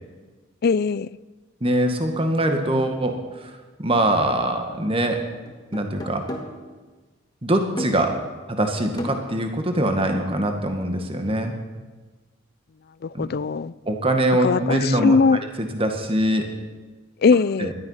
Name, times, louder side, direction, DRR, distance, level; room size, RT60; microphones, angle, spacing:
voice 1, 0.6-1.1 13.0-13.7 14.4-15.4 17.2-17.7, left 4 dB, 55° left, 19 dB, 0.4 m, -20 dB
voice 2, 1.6-3.5 3.8-5.2 5.7-6.2 7.4-8.1 8.5-11.5 13.1-13.3 13.9-15.2 15.7-16.4 17.6-17.7, right 1 dB, 30° right, 5 dB, 1.8 m, -23 dB
sound 1, 5.5-6.7 7.8-8.2 9.0-10.3, equal, 20° left, 1.9 m, -35 dB
19.5 x 12.5 x 5.8 m, 1.3 s
head